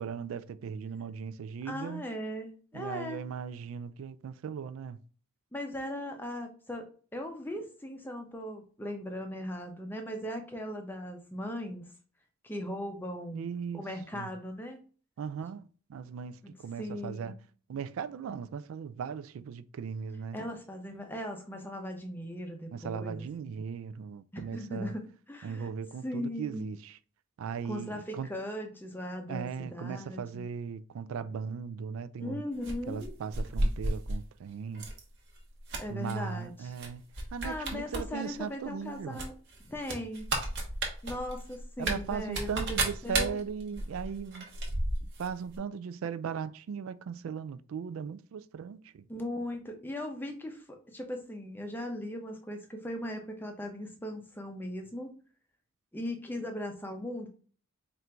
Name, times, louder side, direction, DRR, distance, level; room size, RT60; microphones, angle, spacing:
voice 1, 0.0-2.0 2.7-5.0 13.3-13.8 14.1-14.3 15.2-17.3 17.7-20.4 22.7-24.9 25.4-27.0 27.4-28.3 29.3-32.4 32.9-34.9 35.9-37.0 37.3-39.2 41.8-44.4 45.0-49.0, right 6 dB, 75° right, 0.3 m, -38 dB
voice 2, 1.6-3.2 5.5-6.9 7.1-11.8 12.4-13.5 13.7-14.8 16.4-17.4 20.3-23.6 24.3-25.7 26.0-26.8 27.6-30.4 32.2-33.1 35.8-36.7 37.4-39.3 39.6-40.3 41.0-43.4 49.1-55.1 55.9-57.3, left 1 dB, 10° left, 0.6 m, -38 dB
sound 1, 32.6-34.2 34.7-35.0 35.4-36.1 36.8-36.9 37.1-38.0 38.3-38.4 39.2-45.3 45.5-45.6, right 2 dB, 55° right, 0.9 m, -33 dB
4.4 x 2.5 x 3.3 m
head